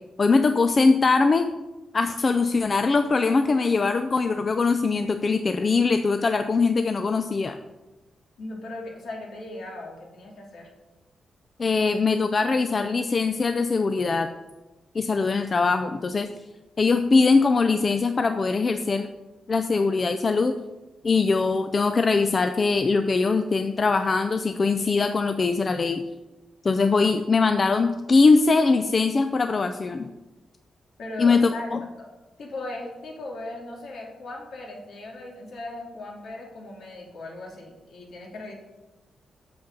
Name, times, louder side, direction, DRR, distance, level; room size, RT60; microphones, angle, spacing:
voice 1, 0.2-1.5 1.9-7.6 11.6-14.3 14.9-16.3 16.8-19.1 19.5-20.5 21.0-26.0 26.6-30.1 31.2-31.8, left 4 dB, 30° left, 8 dB, 0.4 m, -22 dB
voice 2, 8.4-10.7 31.0-31.7 32.0-32.1 32.4-38.6, left 2 dB, 60° left, -1 dB, 2.3 m, -38 dB
8.0 x 6.8 x 5.3 m, 1.1 s
wide cardioid pair, 155°, 0 cm